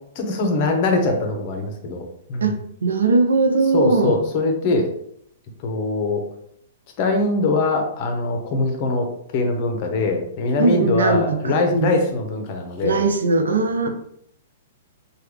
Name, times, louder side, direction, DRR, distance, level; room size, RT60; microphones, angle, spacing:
voice 1, 0.2-2.0 2.3-2.5 3.7-4.9 5.6-6.2 7.0-9.1 9.3-13.0, left 3 dB, 45° left, 3 dB, 0.7 m, -22 dB
voice 2, 2.8-4.3 10.6-11.9 12.8-13.9, right 3 dB, 90° right, 6 dB, 0.5 m, -19 dB
3.3 x 2.3 x 3.2 m, 0.71 s
hypercardioid pair, 140°, 0 cm